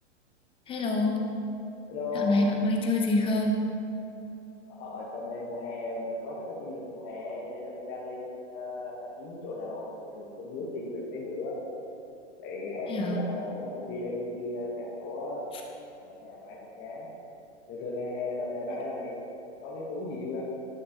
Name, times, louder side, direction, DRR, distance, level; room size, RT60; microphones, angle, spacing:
voice 1, 0.7-1.3 2.1-3.6 12.9-13.3, left 2 dB, 15° left, 1 dB, 0.6 m, -26 dB
voice 2, 1.9-2.4 4.7-11.6 12.4-15.4 15.9-17.1 17.7-19.2 19.6-20.4, left 2 dB, 30° left, -5 dB, 1.0 m, -36 dB
9.9 x 5.2 x 2.7 m, 3.0 s
hypercardioid pair, 130°, 35 cm